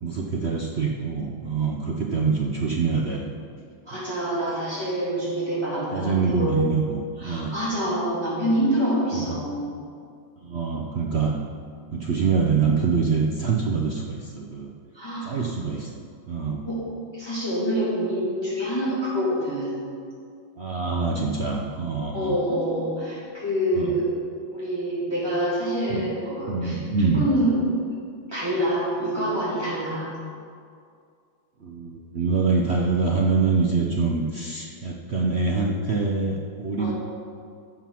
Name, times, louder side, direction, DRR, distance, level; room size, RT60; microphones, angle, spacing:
voice 1, 0.0-3.3 5.9-7.5 9.1-9.4 10.4-11.4 11.9-14.7 15.2-16.7 20.6-22.4 23.7-23.9 25.9-26.1 26.5-27.2 31.6-36.9, right 4 dB, 65° right, -1 dB, 0.6 m, -25 dB
voice 2, 3.9-6.6 7.2-9.7 14.9-15.3 16.6-16.8 17.1-19.8 22.1-24.1 24.5-26.8 27.1-27.6 28.3-30.1 36.8-36.9, equal, 15° left, -10 dB, 2.8 m, -26 dB
14.5 x 5.0 x 5.8 m, 2.3 s
omnidirectional pair, 2.1 m